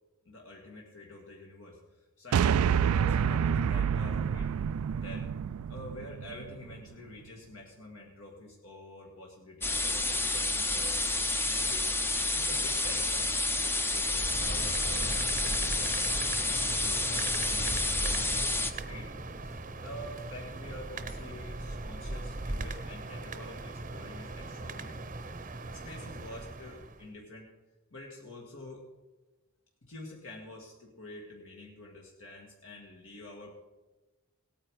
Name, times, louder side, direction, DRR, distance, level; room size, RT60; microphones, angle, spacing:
voice 1, 0.3-4.5 5.0-5.3 5.7-11.0 11.4-11.9 12.3-19.2 19.4-25.0 25.4-27.5 27.9-28.8 29.8-33.5, left 1 dB, 65° left, -1 dB, 1.9 m, -47 dB
sound 1, 2.3-6.8, right 7 dB, 85° right, 0.3 m, -28 dB
sound 2, 9.6-18.7, left 2 dB, 10° left, 0.6 m, -29 dB
sound 3, 14.1-27.0, right 2 dB, 40° right, 0.8 m, -39 dB
17.5 x 9.1 x 4.8 m, 1.1 s
head